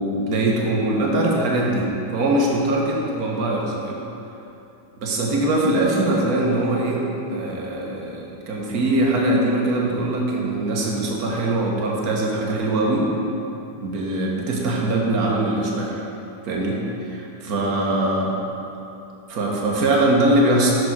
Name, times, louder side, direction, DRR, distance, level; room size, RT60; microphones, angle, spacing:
voice 1, 0.0-4.0 5.0-13.1 13.8-16.0 16.4-18.4 19.3-20.8, right 1 dB, 45° right, -1 dB, 1.5 m, -22 dB
11.0 x 4.9 x 4.4 m, 2.9 s
figure-of-eight pair, 90°, 0 cm